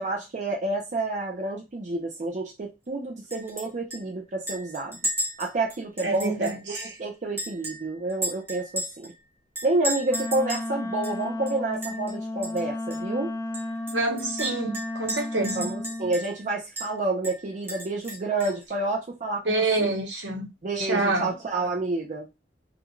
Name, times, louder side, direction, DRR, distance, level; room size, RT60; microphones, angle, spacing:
voice 1, 0.0-5.0 5.4-9.1 9.6-13.3 15.5-19.9 20.6-22.3, right 2 dB, 40° right, 0.5 m, -29 dB
Chink clink, 3.3-3.7 3.9-4.0 4.5-7.0 7.4-9.1 9.6-10.7 11.0-11.1 11.5-12.1 12.4-12.6 12.9-13.0 13.5-16.4 16.8-16.9 17.2-18.6, equal, 10° right, 0.8 m, -34 dB
voice 2, 6.0-6.9 13.9-15.7 19.4-20.5 20.8-21.3, right 2 dB, 80° right, 1.0 m, -27 dB
Wind instrument woodwind instrument, 10.1-16.2, left 2 dB, 15° left, 0.3 m, -33 dB
2.4 x 2.3 x 3.0 m
head